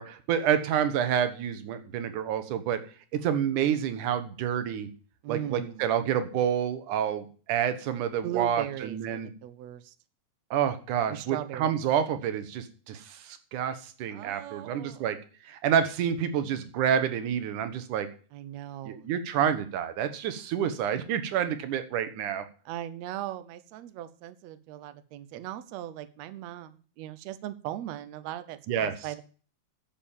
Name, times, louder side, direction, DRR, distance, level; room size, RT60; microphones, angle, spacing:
voice 1, 0.0-2.8 3.1-4.9 5.3-9.3 10.5-15.2 15.4-18.1 18.9-22.5 28.7-28.9, right 9 dB, 90° right, 10 dB, 2.7 m, -28 dB
voice 2, 5.2-5.9 8.2-10.0 11.1-11.7 14.1-15.1 18.3-19.1 22.7-29.2, right 12 dB, 70° right, 12 dB, 1.9 m, -38 dB
10.5 x 7.1 x 7.3 m, 0.39 s
omnidirectional pair, 3.4 m